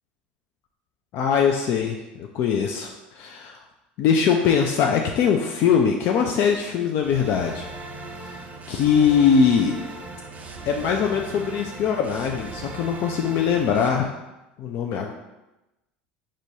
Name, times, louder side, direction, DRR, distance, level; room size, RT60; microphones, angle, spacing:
voice 1, 1.1-3.6 4.0-7.7 8.3-8.4 8.7-9.8 10.7-14.1 14.6-15.1, left 7 dB, 50° left, 2 dB, 0.4 m, -22 dB
sound 1, 7.0-13.9, right 2 dB, 30° right, 0.7 m, -38 dB
6.0 x 2.2 x 2.8 m, 0.99 s
hypercardioid pair, 80°, 5 cm